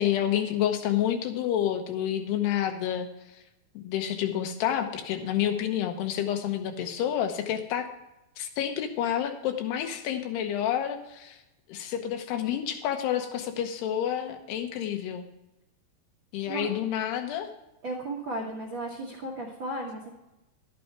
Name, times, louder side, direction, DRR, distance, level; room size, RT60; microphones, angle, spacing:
voice 1, 0.0-3.1 3.7-7.9 8.4-11.4 11.7-15.3 16.3-17.5, left 10 dB, 80° left, 5 dB, 3.1 m, -29 dB
voice 2, 17.8-20.1, right 1 dB, 80° right, 0 dB, 1.0 m, -35 dB
11.5 x 8.5 x 4.6 m, 0.93 s
omnidirectional pair, 4.7 m